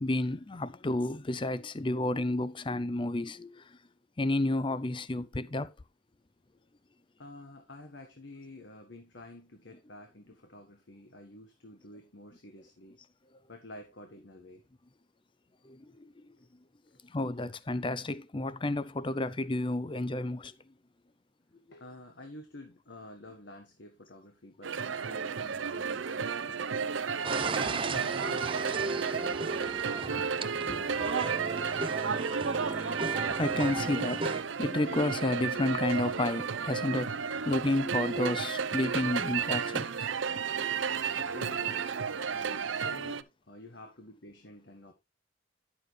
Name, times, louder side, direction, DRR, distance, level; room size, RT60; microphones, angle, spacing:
voice 1, 0.0-3.6 4.2-5.7 15.6-15.9 17.1-20.5 30.7-30.8 32.2-39.9 41.1-41.2, left 2 dB, 25° left, 0.6 m, -31 dB
voice 2, 7.2-13.0 13.5-14.6 21.7-26.9 27.5-31.8 41.2-42.0 42.3-44.9, left 1 dB, 65° left, 1.6 m, -50 dB
sound 1, 24.6-43.2, right 6 dB, 75° right, 0.6 m, -33 dB
sound 2, 27.2-34.4, right 3 dB, 25° right, 0.5 m, -35 dB
10.5 x 7.1 x 3.3 m
head